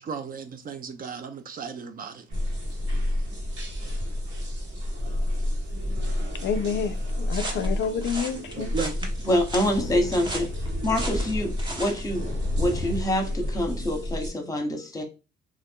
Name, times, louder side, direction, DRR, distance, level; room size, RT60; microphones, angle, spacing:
voice 1, 0.0-2.3 8.5-9.1, right 6 dB, 45° right, 0.5 m, -35 dB
sound 1, 2.3-14.3, left 1 dB, 65° right, 1.3 m, -30 dB
sound 2, 2.3-13.0, left 1 dB, 85° right, 1.1 m, -40 dB
voice 2, 6.4-8.7, left 6 dB, 65° left, 0.4 m, -29 dB
sound 3, 7.3-12.0, right 2 dB, 25° right, 0.9 m, -36 dB
voice 3, 9.2-10.5 10.8-12.3 12.6-15.0, left 1 dB, 20° left, 0.9 m, -26 dB
2.5 x 2.3 x 3.5 m
cardioid pair, 90°, 20 cm